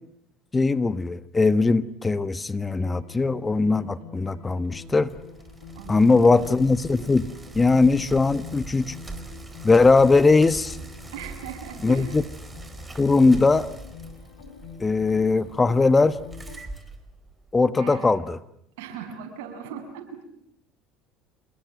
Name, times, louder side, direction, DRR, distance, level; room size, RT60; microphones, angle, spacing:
voice 1, 0.5-5.1 5.9-7.3 7.5-8.9 9.6-10.8 11.8-12.2 13.0-13.7 14.8-16.2 17.5-18.4, left 3 dB, 20° left, 14 dB, 1.2 m, -20 dB
sound 1, 2.8-16.6, left 7 dB, 80° left, 4.9 m, -45 dB
Bicycle, 4.5-17.7, right 3 dB, 15° right, 4.4 m, -42 dB
voice 2, 5.7-6.3 11.1-12.2 17.8-18.2 18.8-20.2, right 8 dB, 80° right, 5 dB, 7.0 m, -39 dB
27.5 x 21.5 x 9.4 m, 0.75 s
supercardioid pair, 90°, 0 cm